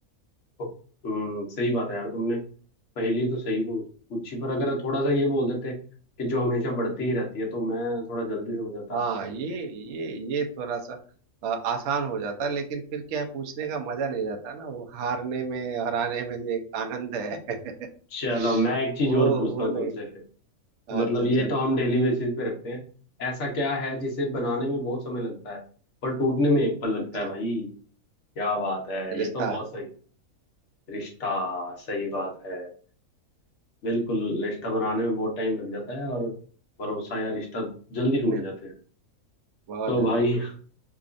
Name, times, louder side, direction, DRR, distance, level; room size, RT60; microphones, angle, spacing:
voice 1, 1.0-2.4 3.0-3.8 4.1-5.8 6.2-9.0 18.1-20.1 20.9-22.8 23.2-25.6 26.0-27.7 28.4-29.9 30.9-32.7 33.8-36.3 36.8-38.7 39.9-40.6, equal, 55° left, 0 dB, 1.3 m, -27 dB
voice 2, 8.9-11.0 11.4-17.7 18.3-18.6 19.0-20.0 20.9-21.6 27.2-27.3 29.1-29.6 38.2-38.4 39.7-40.2, right 5 dB, 60° right, 3 dB, 0.9 m, -30 dB
4.8 x 2.4 x 2.5 m, 0.42 s
omnidirectional pair, 1.5 m